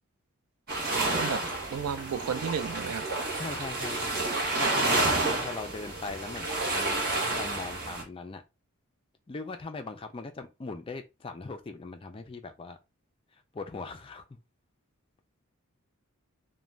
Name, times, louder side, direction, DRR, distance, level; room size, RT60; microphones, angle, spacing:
sound 1, 0.7-8.0, right 2 dB, 45° right, 0.9 m, -30 dB
voice 1, 0.9-1.4 1.7-3.1, right 7 dB, 80° right, 0.4 m, -33 dB
voice 2, 3.4-4.3 4.6-8.4 9.3-12.8 13.5-14.4, left 3 dB, 25° left, 0.3 m, -40 dB
2.5 x 2.2 x 3.1 m
head